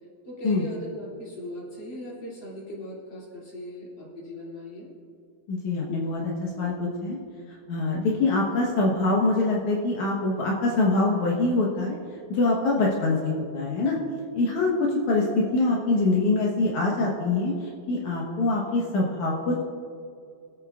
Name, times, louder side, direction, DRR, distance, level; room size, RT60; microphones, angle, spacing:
voice 1, 0.3-4.9, left 1 dB, 40° left, -5 dB, 3.5 m, -38 dB
voice 2, 5.5-7.2 7.7-12.0 12.3-14.0 14.3-19.6, left 2 dB, 75° left, -4 dB, 2.7 m, -24 dB
25.0 x 8.6 x 2.5 m, 2.4 s
omnidirectional pair, 3.4 m